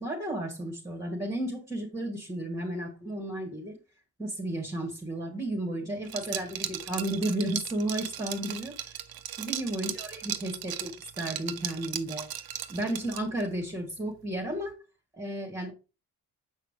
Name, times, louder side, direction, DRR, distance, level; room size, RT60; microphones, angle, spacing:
voice 1, 0.0-3.8 4.2-12.3 12.7-14.7 15.1-15.7, right 1 dB, 10° right, -4 dB, 3.5 m, -33 dB
Liquid, 6.1-13.5, right 10 dB, 55° right, 0.9 m, -37 dB
7.7 x 5.7 x 3.4 m, 0.31 s
hypercardioid pair, 40°, 43 cm